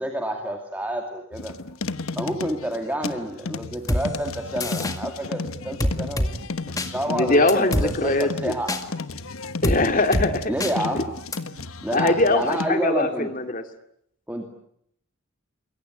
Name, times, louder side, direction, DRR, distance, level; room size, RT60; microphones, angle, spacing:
voice 1, 0.0-1.6 2.2-6.3 6.8-8.8 10.5-11.1 11.5-13.3 14.3-14.5, right 1 dB, 10° right, 3 dB, 2.4 m, -29 dB
sound 1, 1.3-12.7, left 3 dB, 85° left, 1.2 m, -33 dB
sound 2, 3.9-4.0 4.6-5.0 5.8-6.3 6.8-6.9 7.5-7.9 8.7-8.8 9.6-9.8 10.1-10.3 10.6-10.7 11.3-11.4, left 1 dB, 15° left, 2.0 m, -23 dB
voice 2, 7.1-8.5 9.6-10.5 10.9-11.0 11.9-13.6, left 2 dB, 40° left, 7 dB, 2.4 m, -22 dB
27.0 x 22.0 x 9.4 m, 0.72 s
head